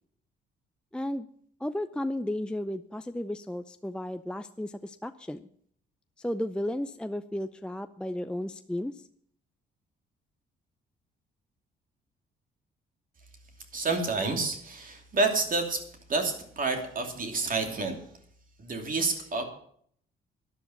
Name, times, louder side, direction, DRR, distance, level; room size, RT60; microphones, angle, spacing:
voice 1, 0.9-1.3 1.6-5.4 6.2-9.0, left 1 dB, 5° left, 10 dB, 0.5 m, -34 dB
voice 2, 13.7-18.0 18.6-19.4, right 3 dB, 45° right, 4 dB, 2.8 m, -29 dB
11.5 x 10.5 x 7.2 m, 0.63 s
cardioid pair, 90°, 20 cm